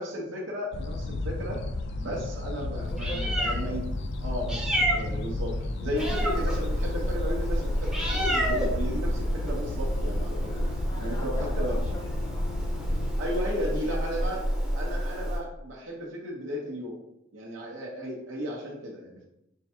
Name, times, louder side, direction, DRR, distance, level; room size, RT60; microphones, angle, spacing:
voice 1, 0.0-1.6 2.0-3.8 4.2-10.6 11.0-11.8 13.2-14.4 14.7-17.0 17.3-19.2, equal, 70° right, -3 dB, 1.0 m, -34 dB
sound 1, 0.7-13.1, left 2 dB, 60° left, 0.4 m, -33 dB
Meow, 2.8-15.4, equal, 5° right, 0.9 m, -30 dB
voice 2, 2.9-3.4 10.4-12.5 13.7-13.9 17.9-18.1, left 1 dB, 25° left, -1 dB, 1.0 m, -44 dB
4.6 x 2.3 x 4.3 m, 0.83 s
head